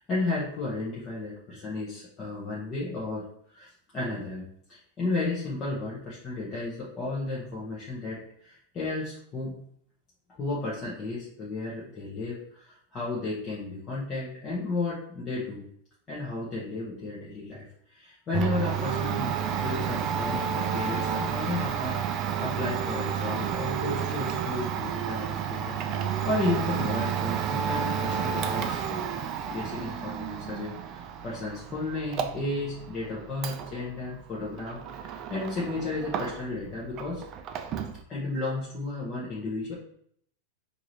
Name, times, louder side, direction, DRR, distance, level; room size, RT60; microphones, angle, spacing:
voice 1, 0.0-9.6 10.4-15.6 16.1-25.8 26.2-29.1 29.5-37.2 38.1-39.7, left 2 dB, 20° left, -6 dB, 0.9 m, -33 dB
Domestic sounds home sounds, 18.3-36.7 36.9-38.0, right 8 dB, 30° right, 0.3 m, -31 dB
4.7 x 2.6 x 3.0 m, 0.65 s
supercardioid pair, 160°, 0 cm